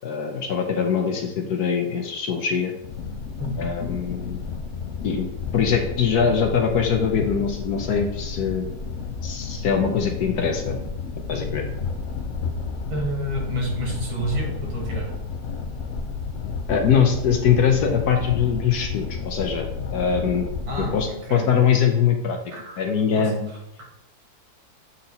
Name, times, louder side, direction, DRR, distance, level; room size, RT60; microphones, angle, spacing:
voice 1, 0.0-2.7 3.6-4.4 5.0-5.3 5.5-8.7 9.2-10.8 11.3-11.7 16.7-20.5 20.8-22.4 22.8-23.5, left 7 dB, 65° left, 4 dB, 1.2 m, -22 dB
sound 1, 2.8-21.0, left 5 dB, 80° left, 0.6 m, -31 dB
voice 2, 12.9-15.1 20.7-21.5 22.5-22.8 23.2-23.8, right 1 dB, 85° right, -1 dB, 2.5 m, -30 dB
7.8 x 4.2 x 4.1 m, 0.80 s
omnidirectional pair, 2.1 m